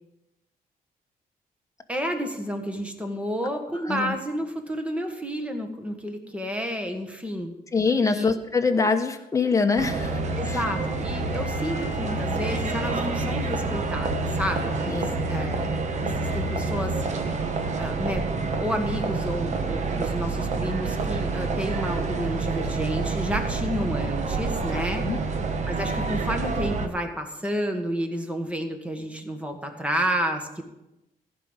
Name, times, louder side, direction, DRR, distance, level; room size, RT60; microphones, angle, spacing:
voice 1, 1.9-7.6 8.0-8.3 10.3-15.6 16.0-17.4 17.7-25.1 25.7-30.6, equal, 10° right, 4 dB, 1.6 m, -30 dB
voice 2, 7.7-10.2 14.9-15.0 25.0-25.2, left 4 dB, 20° left, 5 dB, 1.0 m, -23 dB
sound 1, 9.8-26.9, right 3 dB, 50° right, 1.2 m, -28 dB
15.0 x 5.4 x 7.3 m, 0.92 s
cardioid pair, 135°, 15 cm